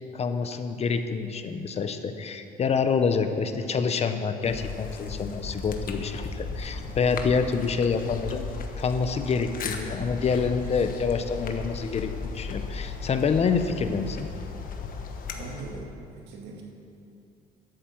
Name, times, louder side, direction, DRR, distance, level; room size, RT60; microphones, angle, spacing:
voice 1, 0.1-8.4 8.8-14.3, left 5 dB, 40° left, 9 dB, 0.8 m, -27 dB
sound 1, 4.4-15.9, left 5 dB, 55° left, 1.2 m, -36 dB
voice 2, 15.3-15.9 16.2-16.6, right 4 dB, 85° right, 0 dB, 2.0 m, -40 dB
11.5 x 8.4 x 7.2 m, 2.6 s
cardioid pair, 110°, 17 cm